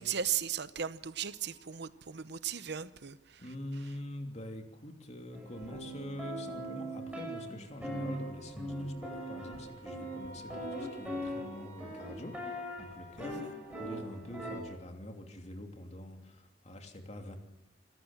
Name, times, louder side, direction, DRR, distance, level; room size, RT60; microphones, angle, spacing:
voice 1, 0.0-3.4 13.4-13.5, right 9 dB, 65° right, 0.8 m, -36 dB
sound 1, 0.9-2.4 2.7-3.0 3.2-3.6 6.8-14.7, equal, 45° right, 6.6 m, -56 dB
voice 2, 3.4-17.4, left 1 dB, 40° left, 3.0 m, -45 dB
sound 2, 5.3-14.6, equal, 5° right, 7.3 m, -41 dB
26.5 x 13.5 x 7.3 m
head